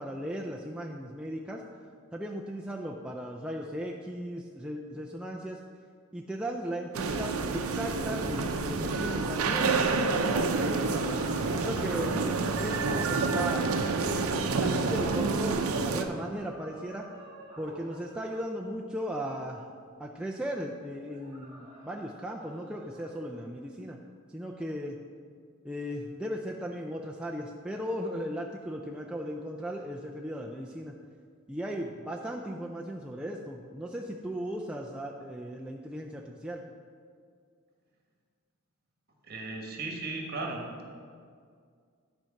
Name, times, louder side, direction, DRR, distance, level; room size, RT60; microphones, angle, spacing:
voice 1, 0.0-1.6 2.1-5.6 6.1-11.0 11.6-12.2 12.6-13.7 14.6-17.1 17.6-19.7 20.0-24.0 24.3-25.0 25.6-30.9 31.5-36.6, equal, 5° right, -1 dB, 0.4 m, -36 dB
sound 1, 6.9-16.0, right 4 dB, 85° right, 0.6 m, -28 dB
sound 2, 10.7-13.6 16.3-18.4 21.0-23.1, right 1 dB, 30° right, 1.8 m, -47 dB
voice 2, 39.3-40.6, right 3 dB, 45° right, 1 dB, 1.3 m, -36 dB
10.5 x 4.5 x 5.8 m, 2.1 s
head